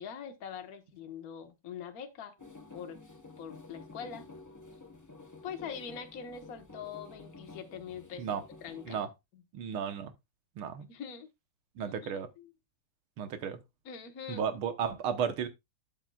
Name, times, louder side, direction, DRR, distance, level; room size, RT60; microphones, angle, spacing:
voice 1, 0.0-2.3 2.7-3.0 3.4-4.2 5.4-9.0 9.3-9.4 10.9-11.3 11.8-12.1 12.4-12.5 13.8-14.4, left 7 dB, 45° left, 1.5 m, -43 dB
sound 1, 2.4-9.1, left 3 dB, 10° left, 0.8 m, -51 dB
voice 2, 9.5-10.1 10.6-10.9 11.8-12.3 13.2-13.6 14.3-15.5, right 7 dB, 75° right, 2.0 m, -33 dB
12.0 x 7.5 x 2.4 m
omnidirectional pair, 2.4 m